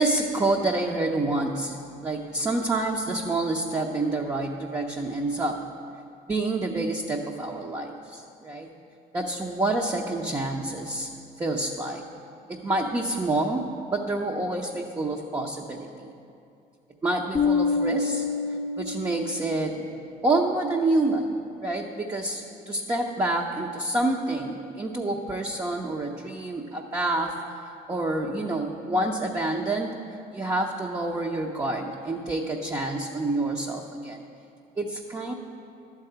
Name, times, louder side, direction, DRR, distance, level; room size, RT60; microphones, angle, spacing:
voice 1, 0.0-5.6 6.3-8.7 9.1-11.1 11.4-12.1 12.5-16.1 17.0-18.2 18.8-20.0 20.2-27.3 27.9-30.0 30.3-34.2 34.8-35.3, right 2 dB, 20° right, -1 dB, 0.7 m, -28 dB
Bass guitar, 17.3-19.8, left 4 dB, 20° left, 0.7 m, -27 dB
12.0 x 4.8 x 7.9 m, 2.5 s
cardioid pair, 110°, 17 cm